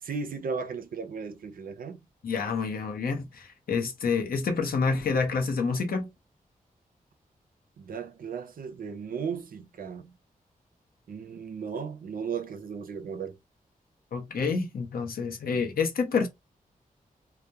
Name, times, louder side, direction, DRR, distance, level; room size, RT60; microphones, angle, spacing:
voice 1, 0.0-2.0 7.8-10.1 11.1-13.4, right 5 dB, 75° right, 0.4 m, -36 dB
voice 2, 2.2-6.1 14.1-16.3, left 5 dB, 85° left, 0.7 m, -28 dB
2.2 x 2.1 x 2.7 m
wide cardioid pair, 90°, 15 cm